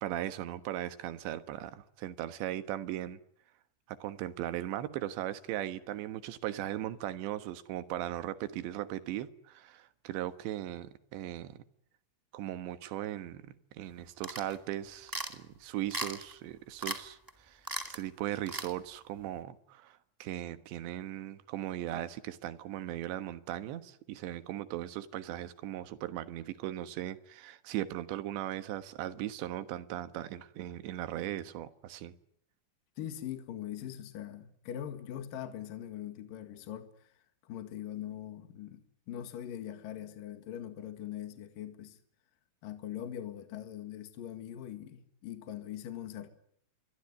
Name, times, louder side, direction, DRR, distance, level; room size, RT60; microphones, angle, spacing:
voice 1, 0.0-3.2 3.9-11.6 12.3-17.6 17.9-32.1, right 13 dB, 90° right, 3.6 m, -38 dB
sound 1, 14.2-14.6 15.1-15.4 15.9-16.3 16.8-17.0 17.3-17.4 17.6-18.0 18.5-18.7, right 1 dB, 20° right, 0.5 m, -37 dB
voice 2, 33.0-37.1 37.4-42.0 42.6-46.3, left 11 dB, 60° left, 3.3 m, -42 dB
27.0 x 22.5 x 9.7 m
omnidirectional pair, 4.9 m